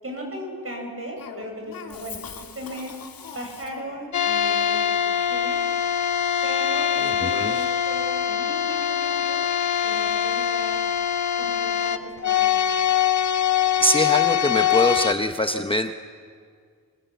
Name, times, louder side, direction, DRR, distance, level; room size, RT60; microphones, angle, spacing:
voice 1, 0.0-2.9 3.3-4.9 5.2-5.6 6.4-9.4 9.8-10.8 11.4-12.7, right 1 dB, 40° right, 2 dB, 6.8 m, -37 dB
Cough, 1.2-4.1, left 6 dB, 70° left, 2.2 m, -41 dB
sound 1, 4.1-15.1, left 9 dB, 50° left, 1.1 m, -23 dB
voice 2, 7.2-7.5 13.8-15.9, left 1 dB, 15° left, 7 dB, 0.7 m, -23 dB
25.0 x 20.0 x 8.2 m, 2.1 s
wide cardioid pair, 105°, 36 cm